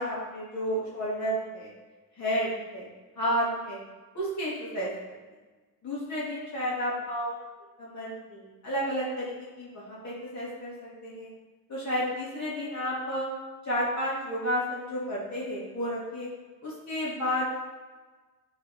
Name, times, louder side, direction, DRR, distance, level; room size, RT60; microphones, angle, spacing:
voice 1, 0.0-1.7 2.2-2.9 3.2-3.8 4.1-5.2 5.8-7.3 7.8-11.3 11.7-13.3 13.6-16.3 16.6-17.5, equal, 50° left, -7 dB, 2.8 m, -31 dB
12.5 x 5.6 x 3.7 m, 1.3 s
cardioid pair, 140°, 37 cm